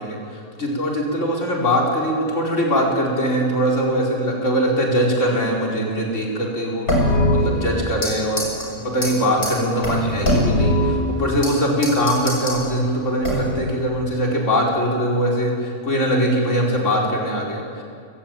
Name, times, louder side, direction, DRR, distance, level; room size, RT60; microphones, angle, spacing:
voice 1, 0.0-8.4 8.7-17.8, equal, 55° left, -2 dB, 5.1 m, -22 dB
sound 1, 6.9-8.1 8.4-8.7 9.0-9.1 9.4-9.5 9.8-11.5 11.8-12.6 13.2-13.7, left 1 dB, 90° left, 6.9 m, -21 dB
29.5 x 16.0 x 9.2 m, 2.3 s
omnidirectional pair, 1.5 m